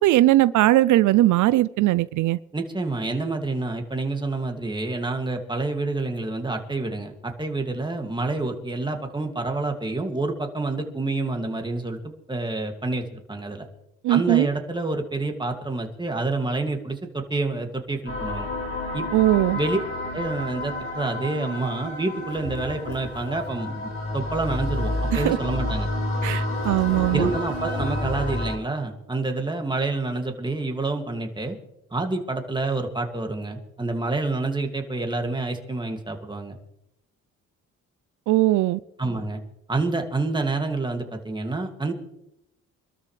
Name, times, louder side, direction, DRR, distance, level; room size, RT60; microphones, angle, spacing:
voice 1, 0.0-2.4 14.0-14.5 19.1-19.6 25.1-25.4 26.2-27.3 38.3-38.8, right 16 dB, 80° right, 0.5 m, -19 dB
voice 2, 2.5-13.6 14.1-18.5 18.9-19.1 19.5-19.8 20.1-25.9 27.1-31.6 31.9-36.6 39.0-39.4 39.7-41.9, right 2 dB, 15° right, 2.3 m, -28 dB
sound 1, 18.1-28.6, left 1 dB, 45° left, 4.7 m, -30 dB
sound 2, 22.3-23.6 24.4-26.0 26.5-28.5, left 1 dB, 70° left, 6.3 m, -37 dB
26.0 x 13.0 x 3.3 m
cardioid pair, 90°, 30 cm